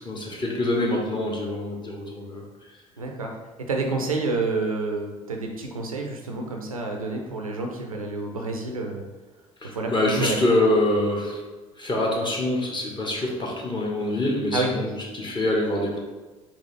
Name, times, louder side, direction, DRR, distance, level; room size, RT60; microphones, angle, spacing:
voice 1, 0.0-2.4 9.6-11.4 11.8-16.0, left 1 dB, 25° left, -2 dB, 1.2 m, -25 dB
voice 2, 3.0-3.3 3.7-9.0 9.6-9.9 10.2-10.4 14.5-14.7, right 3 dB, 90° right, 2 dB, 0.5 m, -28 dB
4.0 x 3.0 x 3.2 m, 1.3 s
figure-of-eight pair, 55°, 17 cm